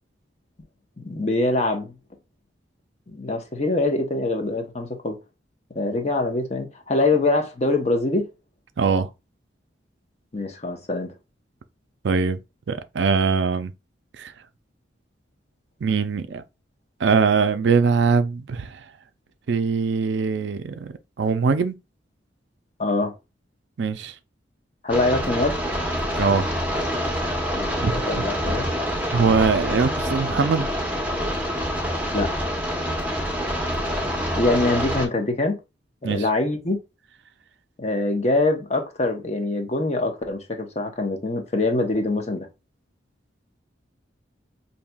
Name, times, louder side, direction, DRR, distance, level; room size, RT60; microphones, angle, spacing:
voice 1, 1.0-1.9 3.1-5.2 5.7-8.3 10.3-11.1 22.8-23.1 24.8-25.6 27.6-28.7 32.1-32.3 34.3-35.6 36.0-36.8 37.8-42.5, left 2 dB, 35° left, 0.8 m, -24 dB
voice 2, 8.8-9.1 12.0-12.4 12.7-13.7 14.2-14.3 15.8-16.4 17.0-18.9 19.5-21.7 23.8-24.1 26.2-26.5 27.8-28.0 29.1-30.7 36.0-36.2, right 5 dB, 70° right, 0.4 m, -22 dB
sound 1, 24.9-35.1, equal, 10° right, 0.8 m, -26 dB
5.5 x 2.7 x 2.2 m
head